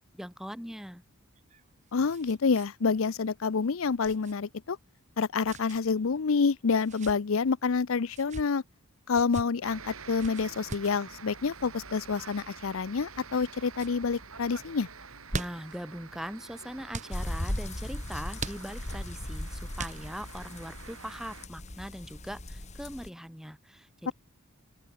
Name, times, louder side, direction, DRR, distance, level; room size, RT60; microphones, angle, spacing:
voice 1, 0.1-1.0 15.3-24.1, equal, ahead, 7.0 m, -41 dB
sound 1, 1.3-2.7 3.0-3.1 4.0-4.3 5.4-5.8 6.7-7.2 8.1-8.5 9.1-9.5 10.2-11.0 12.1-12.4 13.1-13.5 13.7-13.9 15.0-15.8 16.9-17.2 18.4-19.0 19.8-20.3, right 2 dB, 35° right, 6.9 m, -40 dB
voice 2, 1.9-4.8 5.2-8.6 9.1-14.9 24.1-24.2, left 5 dB, 70° left, 0.6 m, -28 dB
sound 2, 9.6-21.5, right 5 dB, 80° right, 3.6 m, -48 dB
sound 3, 17.1-23.1, left 1 dB, 30° left, 2.1 m, -38 dB
open air
head